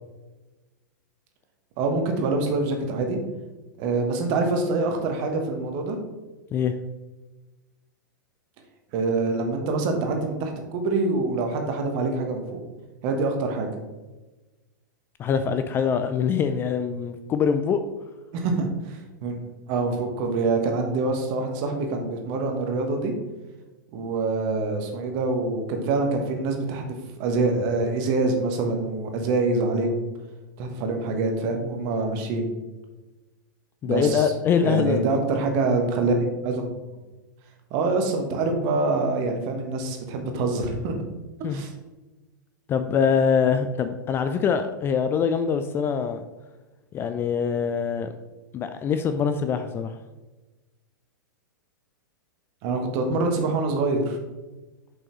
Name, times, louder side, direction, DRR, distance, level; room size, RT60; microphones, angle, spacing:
voice 1, 1.8-3.2 3.8-6.0 8.9-12.6 13.0-13.7 18.3-19.4 19.7-23.1 23.9-30.1 30.6-32.5 33.8-34.3 34.6-36.6 37.7-40.9 41.5-41.7 52.6-54.2, right 3 dB, 40° right, 4 dB, 1.3 m, -25 dB
voice 2, 15.2-17.8 33.8-35.0 41.4-41.6 42.7-46.2 46.9-48.1 48.5-50.0, left 6 dB, 20° left, 9 dB, 0.3 m, -24 dB
7.0 x 5.5 x 3.1 m, 1.1 s
figure-of-eight pair, 100°, 11 cm